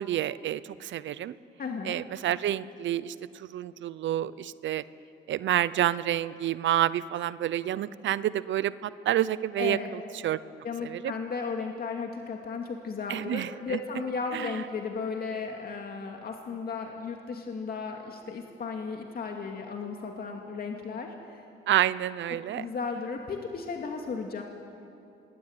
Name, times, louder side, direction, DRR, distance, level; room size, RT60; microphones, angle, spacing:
voice 1, 0.0-1.3 1.8-4.8 5.3-10.4 10.8-11.1 13.1-13.8 14.3-14.5 21.7-22.7, right 12 dB, 70° right, 17 dB, 0.8 m, -29 dB
voice 2, 1.6-2.0 9.6-9.9 10.6-21.4 22.5-24.4, left 5 dB, 50° left, 2 dB, 2.4 m, -35 dB
26.5 x 21.0 x 9.6 m, 2.7 s
cardioid pair, 90°, 20 cm